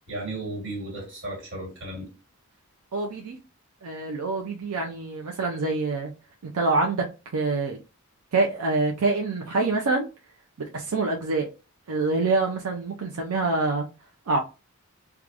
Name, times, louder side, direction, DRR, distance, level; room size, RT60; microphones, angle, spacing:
voice 1, 0.1-2.1, right 2 dB, 55° right, 1 dB, 1.7 m, -34 dB
voice 2, 2.9-3.4 3.8-6.1 6.4-7.0 7.3-7.8 8.3-10.1 10.7-11.5 11.9-13.9 14.3-14.4, right 3 dB, 85° right, 2 dB, 0.5 m, -25 dB
4.6 x 2.3 x 2.5 m, 0.31 s
head